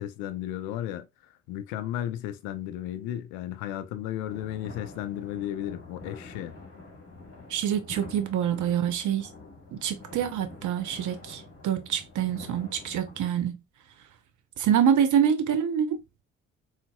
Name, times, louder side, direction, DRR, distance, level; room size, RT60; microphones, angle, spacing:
voice 1, 0.0-6.6, left 12 dB, 65° left, 0.5 m, -34 dB
sound 1, 4.3-13.3, left 2 dB, 35° left, 1.5 m, -46 dB
voice 2, 7.5-9.3 9.7-13.6 14.6-16.0, right 9 dB, 50° right, 0.7 m, -26 dB
3.9 x 2.1 x 2.3 m
figure-of-eight pair, 45°, 39 cm